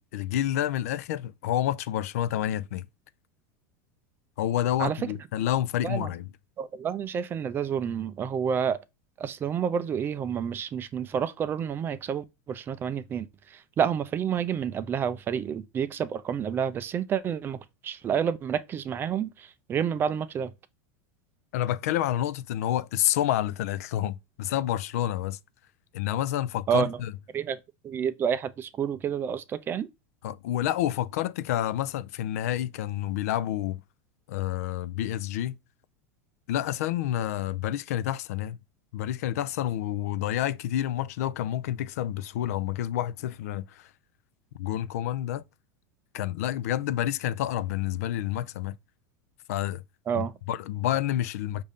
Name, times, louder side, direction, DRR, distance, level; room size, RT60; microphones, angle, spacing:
voice 1, 0.0-2.9 4.4-6.3 21.5-25.4 25.9-27.1 30.2-33.8 34.3-35.6 36.5-38.6 38.9-43.9 44.6-45.4 46.1-48.8 49.5-49.8 50.2-51.6, left 12 dB, 75° left, 0.3 m, -29 dB
voice 2, 4.8-5.1 5.8-6.1 6.6-8.8 9.2-20.5 26.7-27.0 27.3-29.9 50.1-50.3, right 8 dB, 25° right, 0.4 m, -29 dB
5.2 x 2.6 x 3.4 m
supercardioid pair, 125°, 8 cm